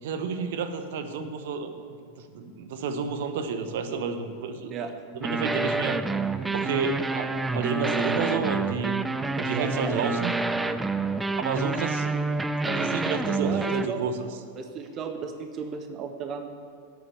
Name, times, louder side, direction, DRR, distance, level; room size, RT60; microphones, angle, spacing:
voice 1, 0.0-1.7 2.2-4.7 5.1-6.0 6.5-9.0 9.4-10.3 11.4-12.1 12.7-14.3, right 5 dB, 55° right, 8 dB, 0.9 m, -30 dB
sound 1, 5.2-13.9, right 3 dB, 10° right, 0.4 m, -28 dB
voice 2, 9.5-10.1 13.4-14.0 14.5-16.5, right 6 dB, 30° right, 7 dB, 0.7 m, -34 dB
11.0 x 8.3 x 6.8 m, 2.1 s
figure-of-eight pair, 90°, 0 cm